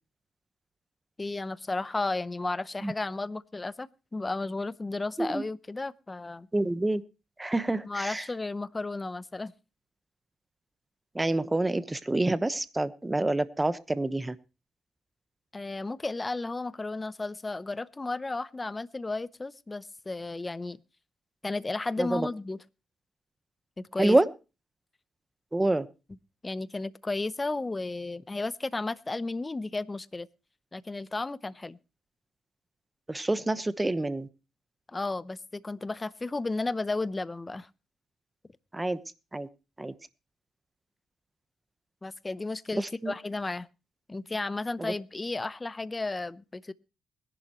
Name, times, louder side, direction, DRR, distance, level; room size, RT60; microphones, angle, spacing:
voice 1, 1.2-6.5 7.9-9.5 15.5-20.8 21.4-22.6 23.8-24.2 26.4-30.3 30.7-31.8 34.9-37.7 42.0-43.7 44.1-46.7, left 3 dB, 20° left, 0.7 m, -33 dB
voice 2, 6.5-7.0 7.4-8.3 11.1-14.4 22.0-22.3 24.0-24.3 25.5-25.9 33.1-34.3 38.7-39.0 39.3-39.5 39.8-39.9 42.8-43.1 44.8-44.9, right 2 dB, 15° right, 1.0 m, -27 dB
21.0 x 11.0 x 3.0 m
cardioid pair, 90°, 0 cm